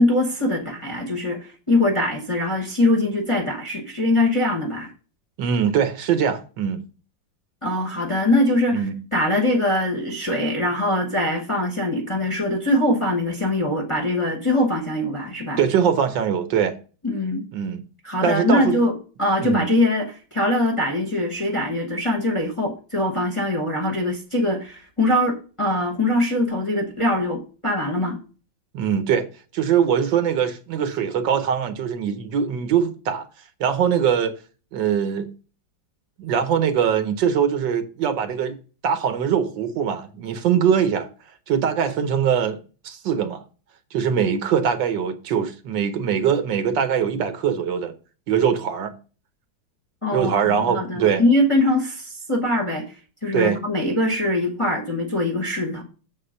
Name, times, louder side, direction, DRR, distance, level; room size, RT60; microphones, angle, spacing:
voice 1, 0.0-4.9 7.6-15.6 17.0-17.5 18.0-28.2 50.0-53.0 53.2-55.8, left 1 dB, 20° left, 1.0 m, -22 dB
voice 2, 5.4-6.8 8.7-9.0 15.6-16.8 17.5-17.8 18.2-18.7 19.4-19.7 28.7-29.3 29.5-33.3 33.6-34.3 34.7-35.3 36.2-38.6 38.8-41.1 41.5-43.4 43.9-47.9 48.3-48.9 50.1-51.2 53.3-53.6, right 8 dB, 70° right, 1.5 m, -22 dB
7.3 x 4.3 x 6.3 m
omnidirectional pair, 2.1 m